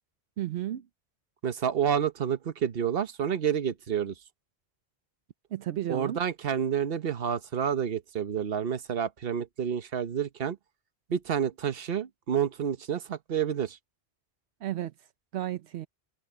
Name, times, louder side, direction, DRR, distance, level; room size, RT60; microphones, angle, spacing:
voice 1, 0.4-0.9 5.5-6.2 14.6-14.9 15.3-15.9, right 12 dB, 85° right, 1.0 m, -33 dB
voice 2, 1.4-4.1 5.9-10.6 11.1-13.8, right 8 dB, 65° right, 1.2 m, -29 dB
omnidirectional pair, 1.1 m